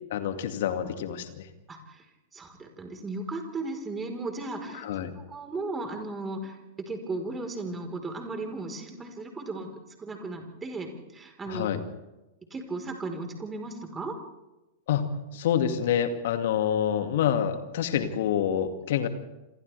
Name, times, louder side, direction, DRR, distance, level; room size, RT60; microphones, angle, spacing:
voice 1, 0.1-1.5 4.7-5.1 11.5-11.8 14.9-15.1 15.3-19.1, left 9 dB, 60° left, 7 dB, 2.3 m, -27 dB
voice 2, 1.7-2.0 2.3-4.9 5.3-6.6 6.9-9.7 10.0-11.7 12.5-14.2, right 2 dB, 15° right, 3 dB, 4.3 m, -36 dB
29.0 x 27.0 x 3.5 m, 1.0 s
figure-of-eight pair, 100°, 0 cm